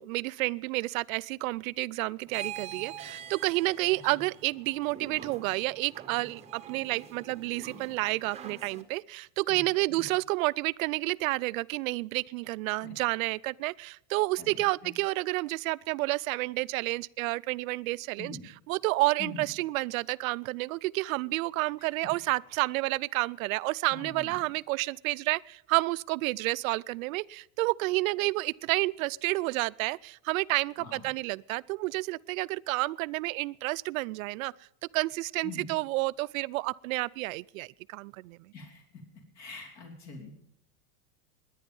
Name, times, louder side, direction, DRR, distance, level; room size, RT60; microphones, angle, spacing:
voice 1, 0.0-18.4 18.7-34.5 34.9-38.5, right 21 dB, 80° right, 0.5 m, -30 dB
sound 1, 2.3-8.8, right 8 dB, 15° right, 1.1 m, -45 dB
voice 2, 14.4-14.9 18.2-18.5 19.2-19.5 21.8-21.9 23.9-24.4 30.8-31.0 35.4-35.8 38.5-38.8 39.3-40.3, left 3 dB, 40° left, 3.1 m, -44 dB
19.5 x 10.0 x 5.4 m
supercardioid pair, 150°, 41 cm